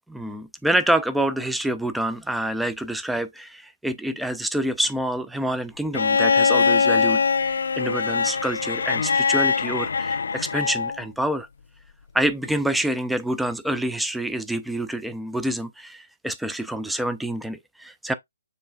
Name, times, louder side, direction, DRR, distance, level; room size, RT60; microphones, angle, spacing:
voice 1, 0.1-11.5 12.1-18.1, right 1 dB, ahead, 0.4 m, -27 dB
Bowed string instrument, 5.9-11.0 12.4-12.5, left 5 dB, 70° left, 0.4 m, -22 dB
6.7 x 3.2 x 2.4 m
hypercardioid pair, 145°, 0 cm